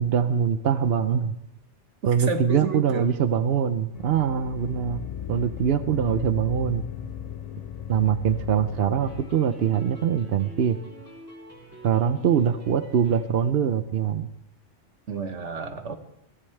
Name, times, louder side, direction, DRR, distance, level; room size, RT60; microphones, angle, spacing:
voice 1, 0.0-1.3 2.1-5.0 5.3-6.8 7.9-10.8 11.8-14.3, right 8 dB, 65° right, 11 dB, 0.9 m, -23 dB
voice 2, 2.3-3.1 15.1-16.0, right 5 dB, 80° right, 6 dB, 1.7 m, -30 dB
sound 1, 3.9-9.3, left 9 dB, 45° left, 0.5 m, -36 dB
sound 2, 9.0-13.6, right 1 dB, 10° right, 3.0 m, -46 dB
22.0 x 15.5 x 3.3 m, 0.82 s
omnidirectional pair, 1.2 m